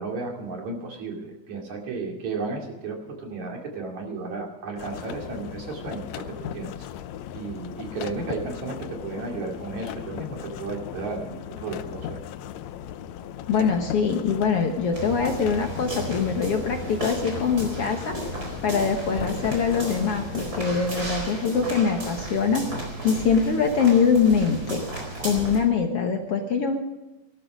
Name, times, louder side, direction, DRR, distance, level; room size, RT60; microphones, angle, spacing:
voice 1, 0.0-6.7 7.3-12.2, right 3 dB, 60° right, 1 dB, 3.8 m, -33 dB
sound 1, 4.8-20.8, left 10 dB, 75° left, 1.7 m, -38 dB
voice 2, 13.5-18.1 18.6-22.6 23.0-24.8 25.2-26.8, left 6 dB, 55° left, 3 dB, 1.8 m, -23 dB
sound 2, 14.9-25.6, right 2 dB, 25° right, 4.7 m, -34 dB
18.5 x 13.0 x 5.1 m, 1.0 s
omnidirectional pair, 3.7 m